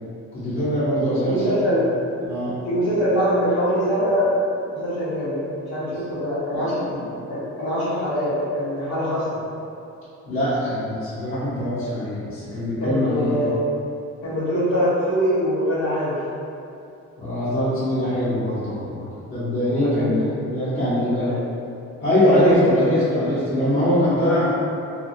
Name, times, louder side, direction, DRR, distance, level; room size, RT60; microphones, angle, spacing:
voice 1, 0.3-1.7 2.2-2.6 5.9-6.0 6.5-7.1 10.3-13.4 17.2-21.3 22.0-24.5, equal, 40° left, -15 dB, 1.1 m, -23 dB
voice 2, 1.2-1.8 2.6-4.3 4.6-5.4 5.7-6.9 7.3-9.4 12.8-13.6 14.2-16.2 19.7-20.3 21.2-21.3 22.1-22.8, equal, 80° left, -14 dB, 1.0 m, -23 dB
2.7 x 2.6 x 2.6 m, 2.7 s
cardioid pair, 90°, 30 cm